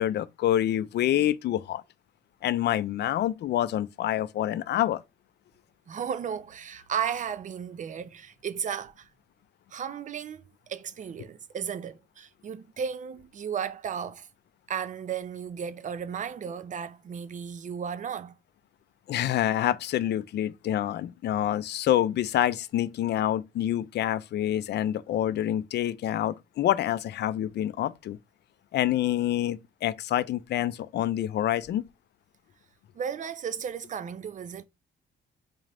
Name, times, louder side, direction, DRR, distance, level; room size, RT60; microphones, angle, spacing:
voice 1, 0.0-1.8 2.4-5.0 19.1-28.2 28.7-31.8, left 12 dB, 60° left, 0.4 m, -27 dB
voice 2, 5.9-9.1 9.7-14.3 14.7-18.3 32.9-34.6, right 8 dB, 40° right, 0.4 m, -34 dB
4.0 x 2.5 x 3.3 m
cardioid pair, 90°, 20 cm